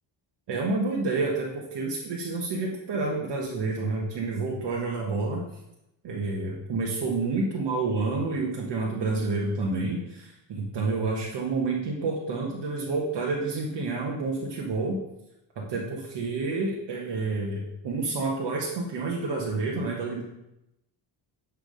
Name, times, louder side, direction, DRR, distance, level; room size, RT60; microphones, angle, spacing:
voice 1, 0.5-5.4 6.0-15.0 15.6-20.2, right 3 dB, 60° right, -2 dB, 1.3 m, -29 dB
10.0 x 3.7 x 5.0 m, 0.87 s
cardioid pair, 130°, 48 cm